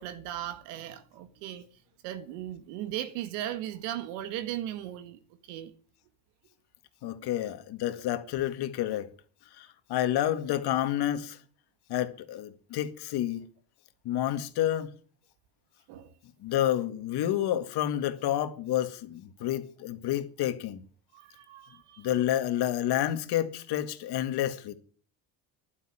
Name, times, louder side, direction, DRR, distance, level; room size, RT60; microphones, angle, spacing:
voice 1, 0.0-1.7 2.0-5.2 5.5-5.7 15.9-16.1 21.1-22.1, right 12 dB, 80° right, 1.8 m, -37 dB
voice 2, 7.0-9.1 9.6-11.4 11.9-13.5 14.1-14.9 16.4-20.8 22.0-24.7, left 12 dB, 60° left, 2.1 m, -29 dB
11.5 x 10.0 x 9.1 m
supercardioid pair, 100°, 43 cm